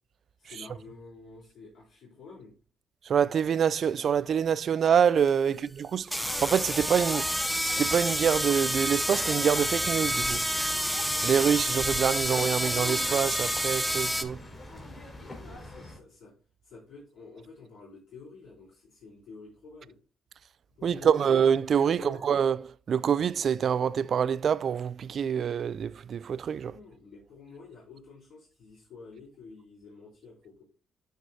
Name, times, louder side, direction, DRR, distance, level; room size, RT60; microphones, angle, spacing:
voice 1, 0.4-2.5 5.4-5.6 15.2-16.3 16.6-20.0 20.8-21.3 21.8-22.3 26.6-30.6, left 4 dB, 75° left, 3.9 m, -49 dB
voice 2, 3.1-7.4 7.6-10.4 11.2-14.4 20.8-26.7, right 7 dB, 55° right, 0.3 m, -26 dB
sound 1, 5.3-5.4 6.0-14.2, equal, ahead, 0.6 m, -29 dB
sound 2, 6.1-16.0, left 2 dB, 30° left, 4.0 m, -42 dB
12.0 x 4.6 x 2.7 m
cardioid pair, 90°, 0 cm